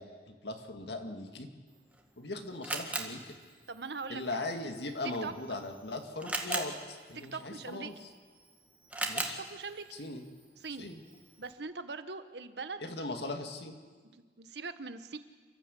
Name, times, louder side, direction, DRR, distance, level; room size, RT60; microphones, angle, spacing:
voice 1, 0.0-1.5 2.2-3.3 4.1-7.9 9.1-9.4 10.0-10.2 10.8-11.0 12.8-13.8, left 2 dB, 70° left, 5 dB, 2.2 m, -39 dB
Camera, 1.7-11.5, right 2 dB, 10° right, 1.7 m, -42 dB
voice 2, 3.7-4.4 5.2-5.3 7.1-7.9 9.4-9.8 10.6-10.9 11.4-12.9 14.1-15.2, right 4 dB, 70° right, 10 dB, 1.2 m, -41 dB
28.5 x 14.0 x 8.4 m, 1.5 s
head